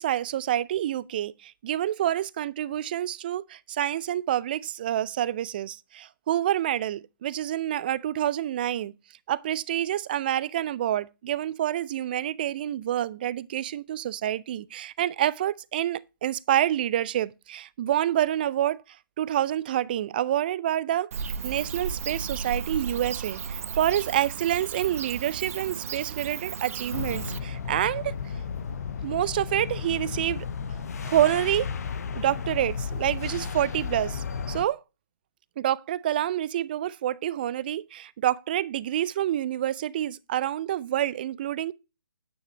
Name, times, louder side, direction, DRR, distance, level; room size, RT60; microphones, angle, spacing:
voice 1, 0.0-8.9 9.3-21.1 21.4-28.1 29.0-30.5 31.0-31.7 32.1-34.2 34.5-34.8 35.6-41.7, right 12 dB, 25° right, 0.5 m, -27 dB
Bird / Cricket, 21.1-27.4, right 6 dB, 40° right, 0.8 m, -35 dB
sound 1, 26.9-34.6, left 5 dB, 45° left, 1.0 m, -33 dB
9.7 x 9.2 x 3.0 m
figure-of-eight pair, 145°, 12 cm